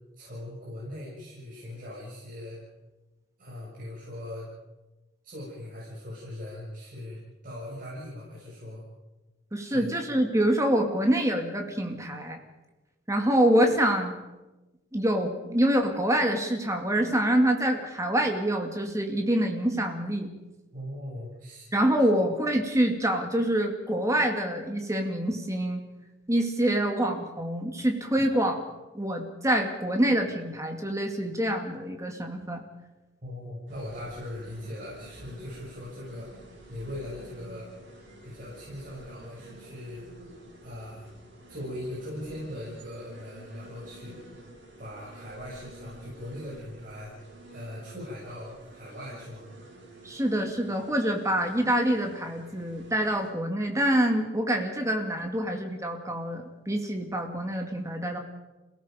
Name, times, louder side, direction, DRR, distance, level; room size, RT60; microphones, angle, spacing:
voice 1, 0.2-2.6 3.4-4.5 5.2-8.8 9.6-9.9 20.7-21.7 33.2-36.4 36.7-37.7 38.2-40.0 40.6-41.1 41.5-44.1 44.8-49.5, left 1 dB, 50° right, -7 dB, 6.6 m, -40 dB
voice 2, 9.5-12.4 13.1-14.1 14.9-20.3 21.7-25.8 26.3-28.7 28.9-32.6 50.0-58.2, right 1 dB, 15° right, 3 dB, 2.5 m, -26 dB
sound 1, 33.7-53.3, right 1 dB, 75° right, 6.8 m, -50 dB
28.0 x 18.0 x 5.3 m, 1.1 s
head